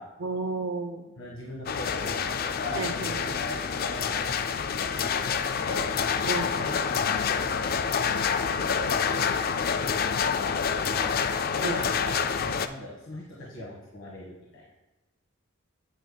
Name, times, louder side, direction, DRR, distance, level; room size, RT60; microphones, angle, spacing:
voice 1, 0.2-1.1 2.7-3.4 6.2-6.5 11.6-11.8, right 3 dB, 80° right, 6 dB, 0.9 m, -32 dB
voice 2, 1.2-2.2 2.5-4.4 4.8-5.8 6.3-11.1 11.5-14.6, left 1 dB, 65° left, -5 dB, 1.5 m, -40 dB
sound 1, 1.7-12.7, left 6 dB, 45° left, 0.3 m, -27 dB
8.9 x 8.6 x 2.2 m, 1.1 s
head